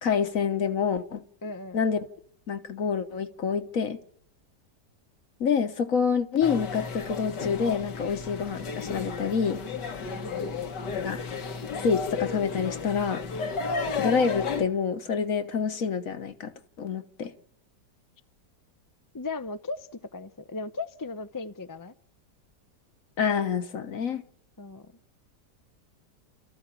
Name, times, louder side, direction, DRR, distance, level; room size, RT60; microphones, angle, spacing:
voice 1, 0.0-1.2 1.7-2.0 2.5-4.0 5.4-9.6 11.0-11.2 11.8-13.2 14.0-16.5 16.8-17.3 23.2-24.2, left 6 dB, 55° left, 1.5 m, -27 dB
voice 2, 1.4-1.8 10.1-10.6 19.1-21.9 24.6-24.9, left 3 dB, 25° left, 0.4 m, -37 dB
sound 1, 6.4-14.6, left 5 dB, 75° left, 2.1 m, -33 dB
29.0 x 14.5 x 8.5 m
omnidirectional pair, 1.8 m